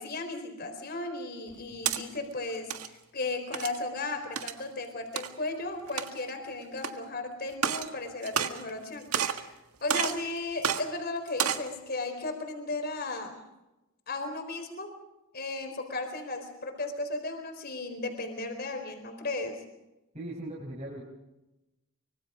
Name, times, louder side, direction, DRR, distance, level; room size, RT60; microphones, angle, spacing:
voice 1, 0.0-9.5 9.8-13.4 14.1-15.0 15.3-19.6, left 2 dB, 45° left, 6 dB, 4.2 m, -35 dB
sound 1, 1.5-2.0 2.5-2.9 3.5-3.8 4.4-4.6 5.2-5.3 5.9-6.3 6.8-6.9 7.5-7.9 8.2-8.8 9.1-9.5 9.9-10.2 10.6-10.8 11.3-11.7, right 8 dB, 90° right, 1.6 m, -30 dB
voice 2, 20.1-21.0, right 1 dB, 30° right, -4 dB, 5.6 m, -39 dB
25.0 x 24.5 x 5.1 m, 0.98 s
head